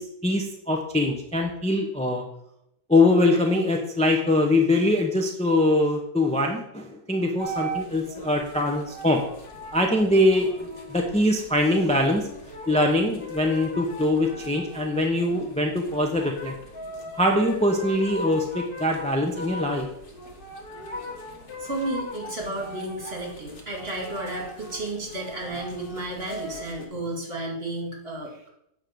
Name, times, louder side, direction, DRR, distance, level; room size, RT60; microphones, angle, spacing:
voice 1, 0.0-2.2 2.9-9.2 9.7-12.3 12.7-16.5 17.1-19.9, left 1 dB, 5° left, 1 dB, 0.6 m, -23 dB
sound 1, 7.4-26.9, equal, 35° left, 1.5 m, -39 dB
voice 2, 21.6-28.5, right 1 dB, 40° right, -1 dB, 2.6 m, -33 dB
9.5 x 3.6 x 7.0 m, 0.78 s
omnidirectional pair, 1.6 m